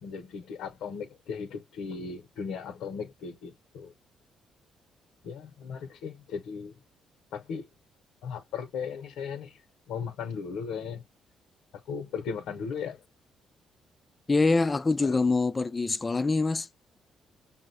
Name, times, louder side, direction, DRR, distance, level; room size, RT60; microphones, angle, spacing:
voice 1, 0.0-3.9 5.2-6.7 7.3-7.7 8.2-9.6 9.9-11.0 11.9-13.0 15.0-15.2, left 6 dB, 85° left, 0.6 m, -37 dB
voice 2, 14.3-16.7, left 3 dB, 25° left, 0.3 m, -25 dB
5.5 x 2.1 x 2.6 m
cardioid pair, 90°, 0 cm